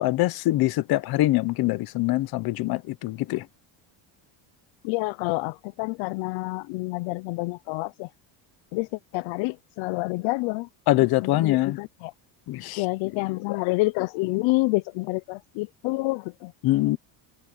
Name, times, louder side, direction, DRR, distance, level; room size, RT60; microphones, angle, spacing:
voice 1, 0.0-3.5 10.9-11.8 12.5-12.8 13.1-13.2 13.5-13.6 16.6-17.0, left 17 dB, 50° left, 1.0 m, -24 dB
voice 2, 4.8-8.1 8.7-8.9 9.1-10.7 11.2-12.1 12.8-16.5, left 23 dB, 70° left, 0.7 m, -28 dB
cardioid pair, 160°, 47 cm